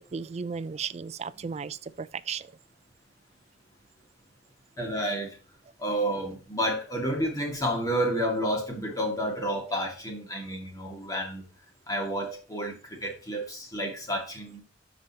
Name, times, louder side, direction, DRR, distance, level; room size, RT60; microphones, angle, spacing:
voice 1, 0.1-2.5, right 6 dB, 40° right, 0.4 m, -35 dB
voice 2, 4.8-5.3 5.8-11.4 11.9-12.7 13.0-14.6, equal, 20° left, 2.0 m, -30 dB
13.0 x 5.1 x 2.9 m
head